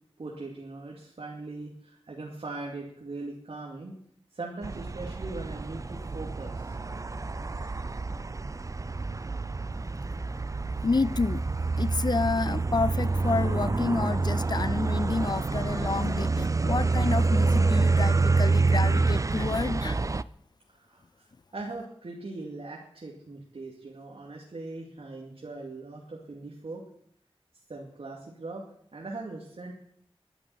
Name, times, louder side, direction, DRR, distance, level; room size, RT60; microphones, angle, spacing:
voice 1, 0.2-3.9 4.3-6.8 20.7-21.3 21.5-26.8 27.7-28.6 28.9-29.7, right 3 dB, 70° right, 2.5 m, -40 dB
sound 1, 4.6-20.2, right 3 dB, 35° right, 0.5 m, -27 dB
voice 2, 10.8-11.4 11.8-20.0, left 4 dB, 45° left, 0.5 m, -29 dB
11.5 x 8.7 x 9.4 m
wide cardioid pair, 75°, 10 cm